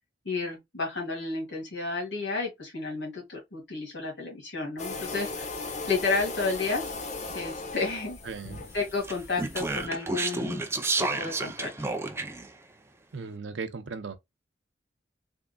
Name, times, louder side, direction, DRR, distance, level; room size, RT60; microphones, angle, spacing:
voice 1, 0.3-5.5 5.9-6.8 7.3-8.2 8.7-10.6 11.0-11.9, left 4 dB, 80° left, 2.0 m, -31 dB
sound 1, 4.8-9.9, left 3 dB, 40° left, 0.7 m, -37 dB
voice 2, 8.2-8.6 13.1-14.2, right 4 dB, 85° right, 0.6 m, -37 dB
Speech, 9.0-12.5, right 3 dB, 15° right, 0.4 m, -31 dB
3.6 x 3.5 x 2.3 m
head